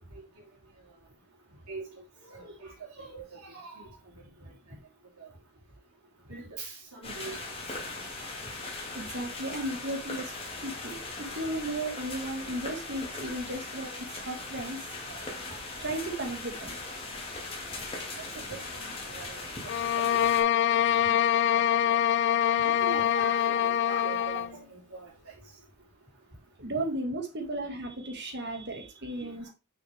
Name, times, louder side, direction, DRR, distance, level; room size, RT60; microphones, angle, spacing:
voice 1, 2.3-3.9 4.2-4.3 5.2-5.3 6.3-7.4 15.8-15.9 18.3-19.7 20.1-20.8 21.0-21.2 21.8-22.0 22.5-25.1 29.2-29.3, right 3 dB, 80° right, 3.4 m, -42 dB
sound 1, 7.0-20.4, left 2 dB, 25° left, 1.9 m, -39 dB
voice 2, 8.9-10.3 10.6-14.8 15.8-16.8 22.5-22.7 26.6-29.5, right 1 dB, 50° right, 2.0 m, -35 dB
sound 2, 19.7-24.5, left 10 dB, 55° left, 0.3 m, -25 dB
6.4 x 6.2 x 3.5 m
head